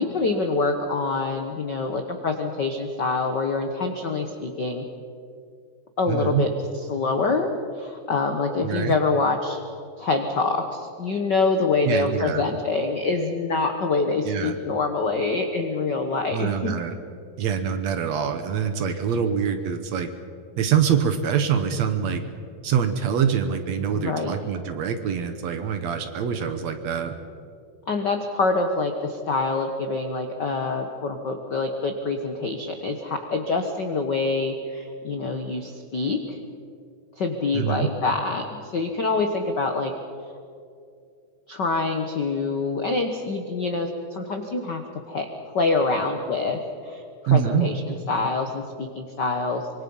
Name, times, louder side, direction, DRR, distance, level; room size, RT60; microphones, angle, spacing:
voice 1, 0.0-4.9 6.0-6.5 6.7-7.5 7.7-9.6 10.0-16.7 23.9-24.3 27.9-36.4 37.2-39.9 41.5-44.8 45.1-45.3 45.5-47.0 47.3-49.6, left 3 dB, 80° left, 5 dB, 0.9 m, -25 dB
voice 2, 6.1-6.4 8.6-9.0 11.9-12.4 14.3-14.6 16.3-17.0 17.4-20.1 20.6-22.2 22.6-27.1 37.5-37.9 47.3-47.7, right 7 dB, 65° right, 8 dB, 2.0 m, -24 dB
25.0 x 23.5 x 5.5 m, 2.4 s
omnidirectional pair, 3.9 m